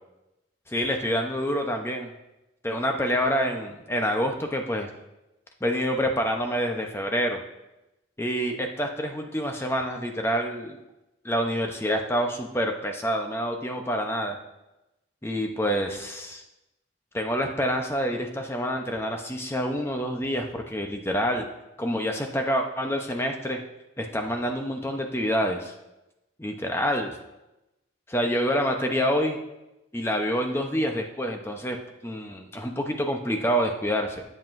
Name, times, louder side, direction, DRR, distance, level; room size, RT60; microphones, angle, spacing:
voice 1, 0.7-2.1 2.6-4.9 5.6-7.4 8.2-10.8 11.2-14.4 15.2-16.4 17.1-21.5 21.8-23.6 24.0-25.7 26.4-27.1 28.1-29.4 29.9-31.8 32.0-34.2, equal, 15° left, 3 dB, 0.8 m, -27 dB
14.0 x 7.7 x 2.6 m, 0.97 s
head